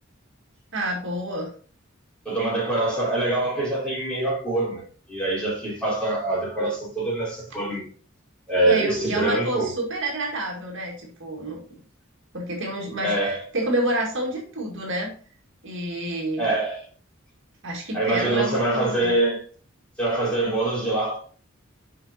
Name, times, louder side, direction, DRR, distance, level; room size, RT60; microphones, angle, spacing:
voice 1, 0.7-1.5 8.6-11.6 12.3-15.1 15.6-16.5 17.6-19.1, right 1 dB, 60° right, 2.0 m, -28 dB
voice 2, 2.2-4.8 5.1-7.8 8.5-9.7 13.0-13.4 16.4-16.8 17.9-19.4 20.0-21.2, right 2 dB, 5° left, 4.3 m, -24 dB
7.8 x 5.4 x 4.1 m
head